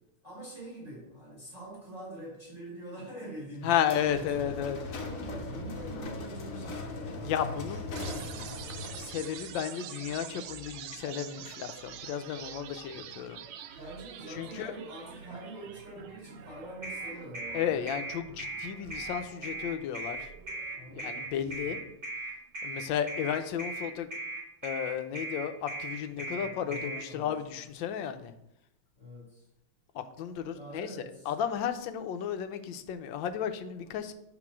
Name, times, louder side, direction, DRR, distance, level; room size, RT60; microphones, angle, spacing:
voice 1, 0.2-4.5 4.9-8.8 13.8-17.8 20.7-21.7 26.2-27.3 29.0-29.5 30.5-31.3, right 1 dB, 20° right, -5 dB, 2.7 m, -45 dB
voice 2, 3.6-4.8 7.2-7.8 9.0-13.4 14.3-14.7 17.5-20.3 20.9-21.8 22.6-24.1 24.6-28.3 29.9-34.1, left 9 dB, 75° left, 9 dB, 1.3 m, -33 dB
sound 1, 3.8-9.3, left 3 dB, 50° left, 1.1 m, -39 dB
sound 2, 8.0-21.9, right 9 dB, 90° right, 1.5 m, -47 dB
sound 3, 16.8-27.0, right 2 dB, 40° right, 2.8 m, -37 dB
7.9 x 3.8 x 6.1 m, 0.82 s
omnidirectional pair, 2.3 m